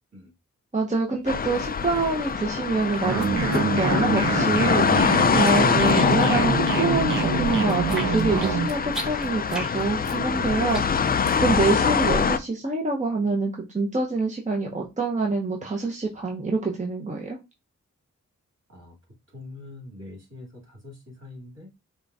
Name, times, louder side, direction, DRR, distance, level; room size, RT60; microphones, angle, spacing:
voice 1, 0.7-5.0 5.3-11.0 11.4-17.4, right 3 dB, 25° right, 0 dB, 0.8 m, -26 dB
sound 1, 1.3-12.4, left 6 dB, 30° left, 0.3 m, -24 dB
sound 2, 1.3-2.3 2.6-4.4 4.6-6.5 6.8-11.6, equal, ahead, 1.1 m, -38 dB
sound 3, 3.0-8.7, right 4 dB, 80° right, 0.7 m, -25 dB
voice 2, 19.3-21.7, left 2 dB, 55° right, -1 dB, 2.4 m, -43 dB
5.0 x 2.4 x 2.5 m, 0.24 s
cardioid pair, 40°, 31 cm